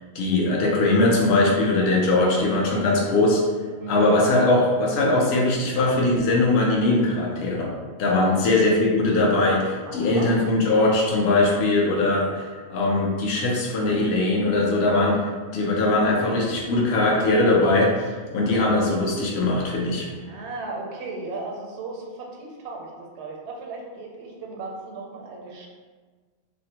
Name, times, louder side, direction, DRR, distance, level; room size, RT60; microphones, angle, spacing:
voice 1, 0.1-3.4 3.9-7.7 8.0-15.2 15.5-20.1, left 2 dB, 70° left, -2 dB, 0.8 m, -21 dB
voice 2, 3.8-4.1 8.2-8.3 9.9-10.3 20.2-25.7, right 3 dB, 80° right, -1 dB, 0.9 m, -36 dB
2.6 x 2.0 x 2.8 m, 1.5 s
omnidirectional pair, 1.1 m